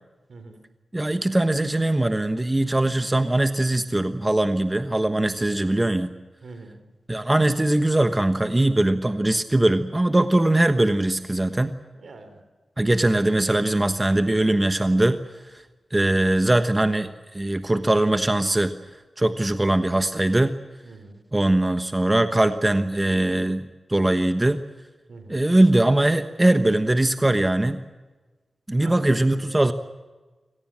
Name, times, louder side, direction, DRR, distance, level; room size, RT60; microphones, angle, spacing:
voice 1, 0.3-0.6 6.4-6.8 11.9-12.4 20.8-21.2 25.1-25.4 28.8-29.6, right 3 dB, 75° right, 8 dB, 3.9 m, -43 dB
voice 2, 0.9-6.1 7.1-11.7 12.8-15.2 15.9-18.7 19.2-20.5 21.3-24.6 25.3-27.8 28.7-29.7, right 1 dB, 20° right, 10 dB, 1.2 m, -21 dB
25.5 x 18.0 x 7.7 m, 1.3 s
wide cardioid pair, 75°, 0 cm